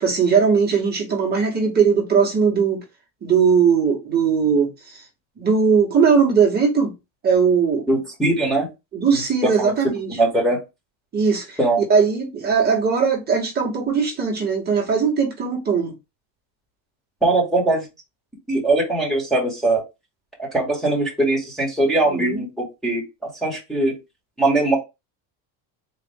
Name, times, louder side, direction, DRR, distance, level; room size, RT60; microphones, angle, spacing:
voice 1, 0.0-2.8 3.2-5.0 5.4-6.9 7.2-7.9 8.9-10.2 11.1-11.6 11.9-15.9 22.1-22.4, right 6 dB, 20° right, 1.0 m, -19 dB
voice 2, 7.9-8.7 9.1-9.7 10.1-10.6 11.6-11.8 17.2-17.9 18.5-19.8 20.4-23.9 24.4-24.8, right 2 dB, ahead, 1.3 m, -21 dB
4.0 x 2.4 x 3.5 m
cardioid pair, 170°, 50 cm